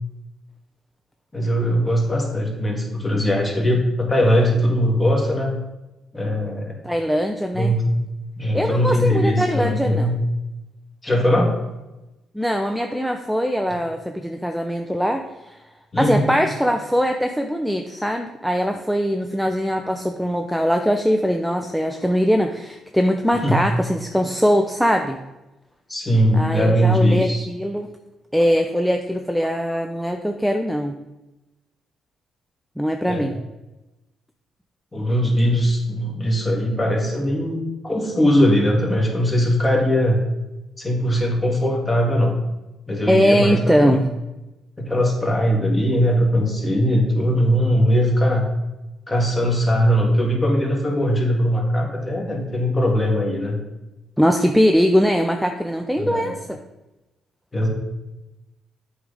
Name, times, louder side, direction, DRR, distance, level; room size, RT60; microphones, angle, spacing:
voice 1, 1.3-5.5 6.1-6.8 7.5-8.0 8.4-10.1 11.0-11.5 15.9-16.3 23.4-23.7 25.9-27.5 33.1-33.4 34.9-40.2 40.8-42.4 42.9-44.0 44.8-48.5 49.1-53.6 56.0-56.3 57.5-57.7, equal, 20° left, 0 dB, 1.9 m, -20 dB
voice 2, 6.8-7.7 8.5-10.1 12.3-15.6 16.0-25.2 26.3-27.9 28.3-31.0 32.8-33.3 43.1-44.0 54.2-56.6, equal, ahead, 4 dB, 0.5 m, -21 dB
7.9 x 3.9 x 5.0 m, 1.0 s
cardioid pair, 90°, 0 cm